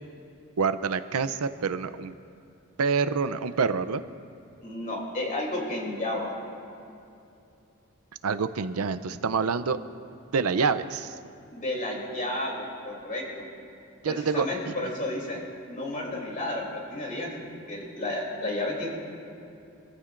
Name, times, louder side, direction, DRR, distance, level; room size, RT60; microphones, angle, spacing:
voice 1, 0.6-2.2 2.8-4.0 8.2-9.8 10.3-11.2 14.0-14.7, right 5 dB, 85° right, 13 dB, 0.6 m, -27 dB
voice 2, 4.6-6.3 11.5-13.5 14.1-15.4 15.7-17.3 17.7-18.9, left 1 dB, 40° left, -2 dB, 3.0 m, -32 dB
25.5 x 14.0 x 2.6 m, 2.7 s
head